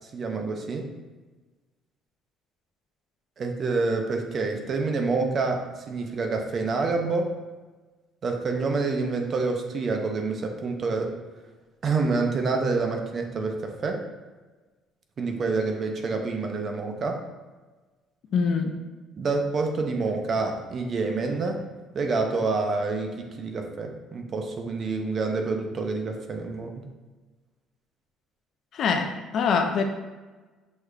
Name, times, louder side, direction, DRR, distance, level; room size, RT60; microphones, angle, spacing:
voice 1, 0.0-0.9 3.4-7.3 8.2-11.1 11.8-14.0 15.2-17.2 19.2-21.6 21.9-26.9, right 3 dB, 30° right, 4 dB, 0.5 m, -27 dB
voice 2, 18.3-18.8 28.7-29.8, left 5 dB, 45° left, 5 dB, 0.4 m, -24 dB
6.3 x 2.4 x 3.2 m, 1.2 s
cardioid pair, 170°, 0 cm